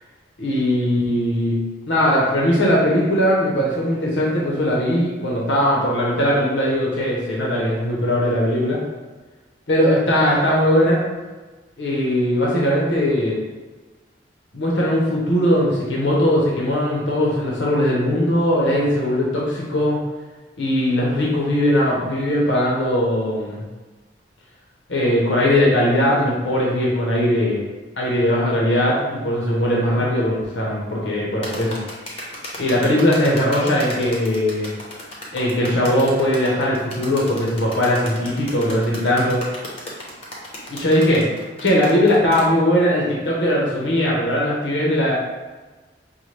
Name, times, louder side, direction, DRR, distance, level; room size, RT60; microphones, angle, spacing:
voice 1, 0.4-1.6 1.9-8.8 9.7-11.0 11.8-13.4 14.5-20.0 20.6-23.6 24.9-27.6 28.0-31.8 32.6-34.7 35.3-39.4 40.7-41.3 41.6-45.1, equal, 80° left, -4 dB, 0.8 m, -19 dB
sound 1, 31.4-42.5, left 1 dB, 30° left, 0.8 m, -34 dB
5.6 x 2.2 x 3.2 m, 1.2 s
head